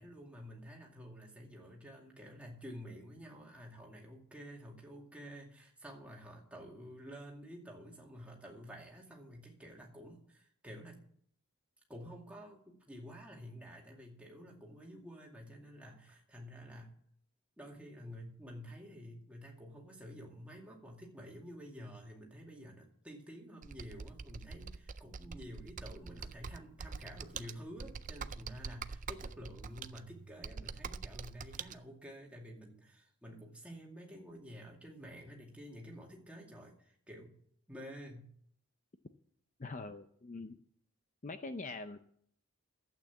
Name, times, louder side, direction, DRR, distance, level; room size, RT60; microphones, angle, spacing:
voice 1, 0.0-11.0 11.9-16.9 17.6-37.3 37.7-38.3, equal, 5° right, -1 dB, 2.3 m, -50 dB
Computer keyboard, 23.6-31.8, right 5 dB, 35° right, 0.4 m, -45 dB
voice 2, 39.6-40.6 41.2-42.0, left 3 dB, 35° left, 9 dB, 0.5 m, -43 dB
12.0 x 8.7 x 7.2 m, 0.64 s
head